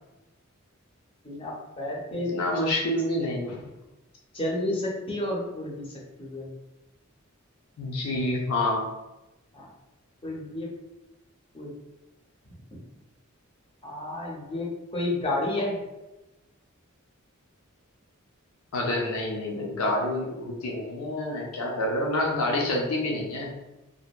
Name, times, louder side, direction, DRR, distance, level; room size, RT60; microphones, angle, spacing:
voice 1, 1.2-2.3 4.3-6.5 9.5-9.7 10.2-10.7 11.5-11.7 13.8-15.8, left 1 dB, 25° left, -3 dB, 0.5 m, -31 dB
voice 2, 2.1-3.6 7.8-8.9 18.7-23.6, left 1 dB, 90° left, -2 dB, 0.5 m, -28 dB
2.7 x 2.1 x 2.3 m, 1.0 s
head